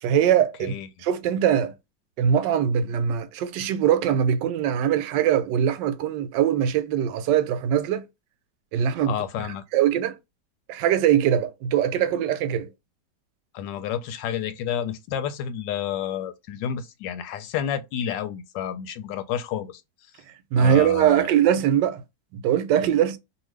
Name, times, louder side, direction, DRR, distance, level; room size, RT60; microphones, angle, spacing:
voice 1, 0.0-0.7 1.0-1.7 2.2-8.0 8.7-9.1 9.7-10.2 10.7-12.7 20.5-22.0 22.3-23.2, right 9 dB, 80° right, 1.2 m, -22 dB
voice 2, 8.8-9.6 13.5-19.8 20.6-21.3, left 9 dB, 90° left, 1.3 m, -30 dB
2.8 x 2.6 x 3.1 m
omnidirectional pair, 1.9 m